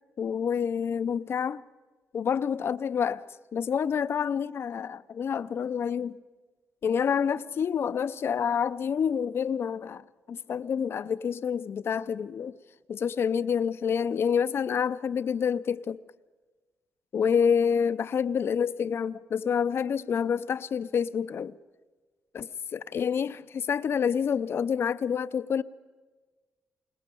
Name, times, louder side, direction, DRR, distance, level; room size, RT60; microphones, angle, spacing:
voice 1, 0.2-1.6 2.1-3.2 3.5-6.2 6.8-12.6 12.9-16.0 17.1-21.6 22.3-25.6, left 7 dB, 55° left, 0.7 m, -28 dB
22.0 x 21.0 x 7.0 m
cardioid pair, 115°, 5 cm